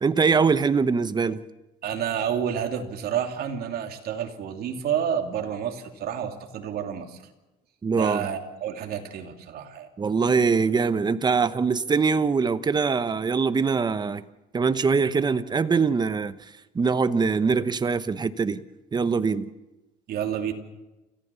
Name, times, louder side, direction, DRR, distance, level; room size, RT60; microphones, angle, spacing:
voice 1, 0.0-1.4 7.8-8.3 10.0-14.2 14.5-16.4 16.7-18.6 18.9-19.5, right 5 dB, 25° right, 1.0 m, -23 dB
voice 2, 1.8-7.2 7.9-9.9 20.1-20.5, right 8 dB, 65° right, 2.8 m, -29 dB
29.5 x 15.0 x 7.1 m
cardioid pair, 110°, 17 cm